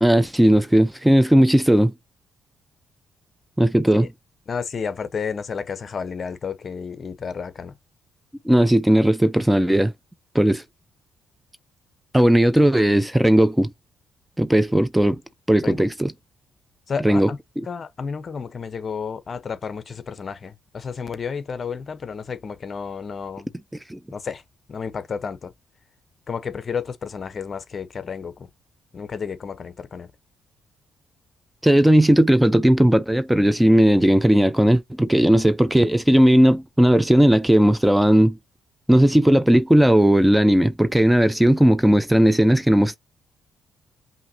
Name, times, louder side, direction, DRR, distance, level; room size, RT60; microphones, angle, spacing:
voice 1, 0.0-1.9 3.6-4.1 8.4-9.9 10.3-10.6 12.1-13.7 14.4-15.2 15.5-16.1 17.0-17.3 23.9-24.0 31.6-38.4 38.9-43.0, right 1 dB, 5° right, 0.6 m, -16 dB
voice 2, 4.5-7.8 15.6-15.8 16.9-17.4 17.6-23.5 24.1-24.4 24.7-25.5 26.3-28.5 28.9-30.1, left 6 dB, 45° left, 0.9 m, -31 dB
5.7 x 2.8 x 2.8 m
cardioid pair, 90°, 0 cm